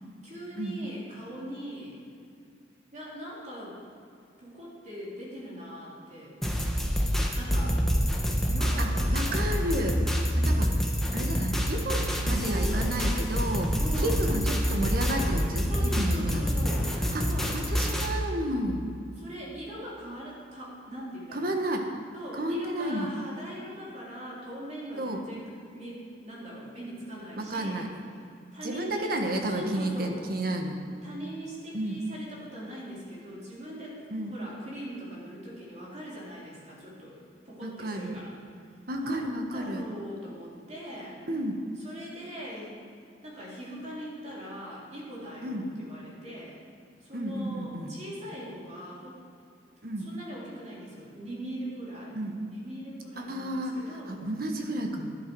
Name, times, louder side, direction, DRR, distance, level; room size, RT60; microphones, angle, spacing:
voice 1, 0.2-2.0 2.9-3.8 4.4-6.3 7.3-7.8 8.5-9.7 12.4-13.0 13.8-14.2 15.7-16.9 17.2-17.6 19.2-21.5 22.1-27.9 28.5-29.2 29.4-30.2 31.0-34.0 34.3-37.2 37.5-38.3 39.0-41.2 41.8-42.8 43.2-46.6 47.0-49.2 50.0-52.1 52.4-54.2, equal, 40° right, -6 dB, 3.5 m, -41 dB
sound 1, 6.4-18.1, equal, ahead, 1.1 m, -27 dB
voice 2, 9.1-10.0 10.4-10.8 11.1-16.7 17.1-17.3 17.7-18.9 21.3-21.9 22.3-23.1 25.0-25.2 27.4-27.9 28.6-30.8 31.7-32.0 34.1-34.3 37.6-38.2 38.9-39.8 41.3-41.6 45.4-45.7 47.1-47.9 49.8-50.1 52.1-52.4 53.2-53.8 54.1-55.2, right 1 dB, 55° right, 3 dB, 1.3 m, -31 dB
12.0 x 10.5 x 4.7 m, 2.5 s
head